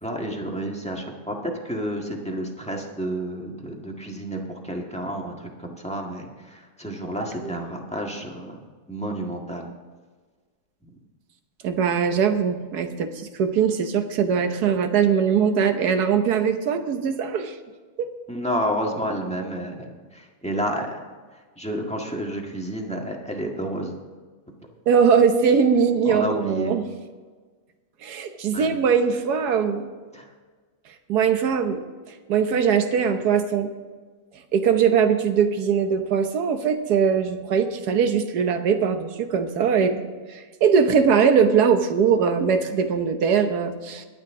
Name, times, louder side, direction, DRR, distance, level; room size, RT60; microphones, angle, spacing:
voice 1, 0.0-8.6 8.9-9.7 10.8-10.9 18.3-21.0 21.6-23.9 26.0-26.7 28.5-28.7 30.1-30.2, equal, 5° left, 0 dB, 1.5 m, -30 dB
voice 2, 11.6-17.5 18.0-18.1 24.9-26.8 28.0-29.9 31.1-31.8 32.3-33.7 34.5-40.0 40.3-44.1, right 6 dB, 80° right, 7 dB, 1.5 m, -21 dB
22.5 x 8.9 x 3.7 m, 1.4 s
omnidirectional pair, 1.7 m